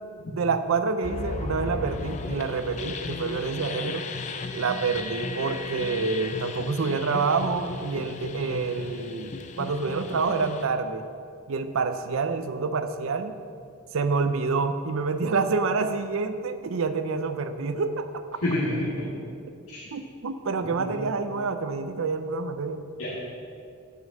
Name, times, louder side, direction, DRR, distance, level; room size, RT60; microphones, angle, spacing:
voice 1, 0.3-4.0 4.5-11.1 11.5-13.3 13.9-18.4 19.9-22.8, right 4 dB, 75° right, 10 dB, 0.5 m, -27 dB
sound 1, 1.0-10.6, left 3 dB, 35° left, 0.4 m, -35 dB
voice 2, 18.4-19.1 19.7-19.8 20.8-21.0 23.0-23.2, left 1 dB, 90° left, -8 dB, 1.5 m, -28 dB
6.3 x 5.2 x 6.6 m, 2.3 s
head